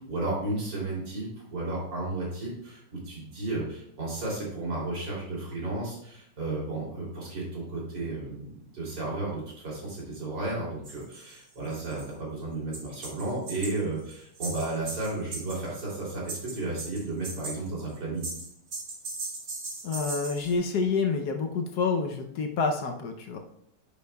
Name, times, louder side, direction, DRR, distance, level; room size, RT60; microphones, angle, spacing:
voice 1, 0.1-18.3, right 2 dB, 70° right, -5 dB, 3.8 m, -33 dB
sound 1, 10.8-11.4 11.6-12.1 12.7-16.0 16.3-17.6 17.9-20.5, right 3 dB, 55° right, 1.7 m, -38 dB
voice 2, 19.8-23.4, left 4 dB, 65° left, 4 dB, 1.2 m, -28 dB
10.5 x 6.5 x 2.3 m, 0.73 s
omnidirectional pair, 2.0 m